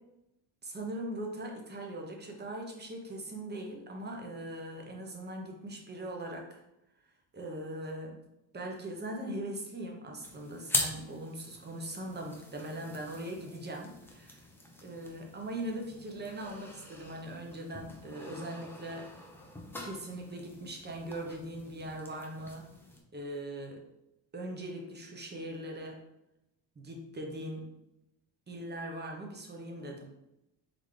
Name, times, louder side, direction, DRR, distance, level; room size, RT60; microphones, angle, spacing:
voice 1, 0.6-6.6 7.3-8.3 8.5-14.4 14.8-19.1 19.8-22.7 23.1-23.8 24.3-26.0 26.8-27.7 28.5-30.1, right 1 dB, 20° right, 1 dB, 0.8 m, -40 dB
sound 1, 10.2-23.0, left 1 dB, 5° left, 0.6 m, -42 dB
3.9 x 3.5 x 3.2 m, 0.87 s
cardioid pair, 120°, 47 cm